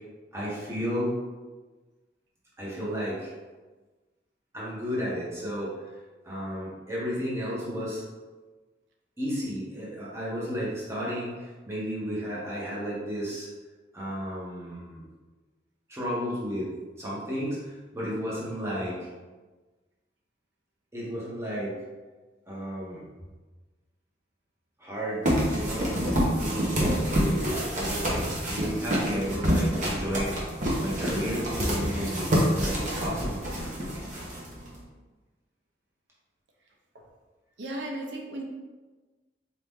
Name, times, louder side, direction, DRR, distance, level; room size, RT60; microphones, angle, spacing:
voice 1, 0.3-1.1 2.6-3.3 4.5-5.8 6.2-8.0 9.2-13.5 13.9-15.0 15.9-16.7 17.0-19.1 20.9-21.7 22.5-23.0 24.8-25.9 26.3-30.4 30.8-33.4, equal, 15° right, -7 dB, 1.0 m, -33 dB
sound 1, 25.2-34.8, equal, 45° right, 0.9 m, -27 dB
voice 2, 37.6-38.4, right 1 dB, 85° right, 0 dB, 0.7 m, -35 dB
4.1 x 2.9 x 3.6 m, 1.3 s
head